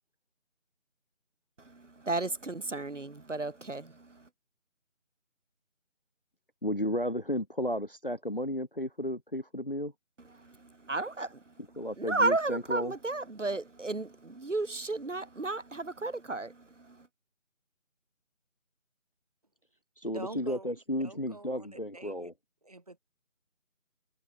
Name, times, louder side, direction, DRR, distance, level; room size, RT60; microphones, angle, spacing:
voice 1, 1.7-4.2 10.4-11.4 12.0-17.0, right 3 dB, 65° right, 1.8 m, -33 dB
voice 2, 6.6-9.9 11.8-12.9 20.0-22.3, equal, 40° left, 0.7 m, -33 dB
voice 3, 20.1-22.3 22.6-23.0, right 2 dB, 30° right, 3.4 m, -45 dB
figure-of-eight pair, 180°, 40 cm